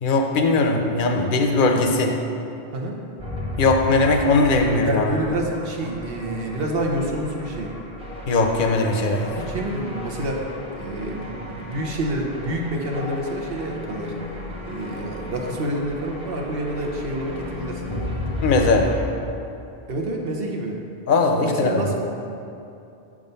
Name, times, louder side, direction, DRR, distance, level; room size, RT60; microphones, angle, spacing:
voice 1, 0.0-2.1 3.6-5.1 8.3-9.4 18.4-18.9 21.1-21.9, left 3 dB, 55° left, 3 dB, 0.8 m, -19 dB
sound 1, 3.2-19.0, left 1 dB, 5° right, 1.0 m, -34 dB
voice 2, 4.8-7.7 9.4-10.4 10.7-14.1 14.7-18.2 19.9-20.8 21.4-21.9, right 1 dB, 65° right, 0 dB, 1.0 m, -28 dB
7.8 x 3.7 x 5.4 m, 2.7 s
omnidirectional pair, 1.1 m